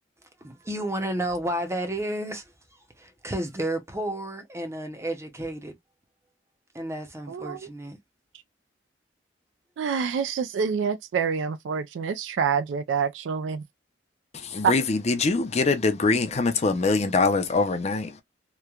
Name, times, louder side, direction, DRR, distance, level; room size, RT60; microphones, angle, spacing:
voice 1, 0.4-2.4 3.0-5.7 6.7-8.0, right 1 dB, 15° right, 0.6 m, -31 dB
voice 2, 7.3-7.6 9.8-13.6 14.6-14.7, right 6 dB, 80° right, 0.3 m, -26 dB
voice 3, 14.3-18.2, left 3 dB, 35° left, 0.5 m, -23 dB
3.0 x 2.1 x 2.3 m
head